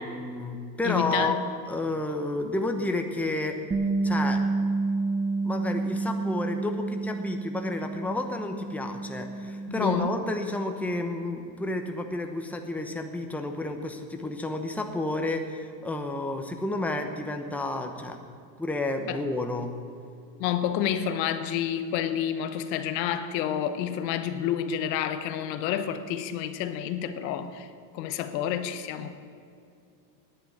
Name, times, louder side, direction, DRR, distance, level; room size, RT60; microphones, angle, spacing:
voice 1, 0.0-1.4 1.7-3.6 4.0-4.4 5.4-18.2 18.6-19.7, left 2 dB, 5° left, 4 dB, 1.0 m, -31 dB
voice 2, 0.8-1.3 9.7-10.2 19.1-19.2 20.4-27.7 27.9-29.1, left 9 dB, 80° left, 10 dB, 1.1 m, -29 dB
Bass guitar, 3.7-10.0, right 3 dB, 10° right, 0.5 m, -29 dB
10.0 x 9.1 x 9.0 m, 2.4 s
supercardioid pair, 120°, 49 cm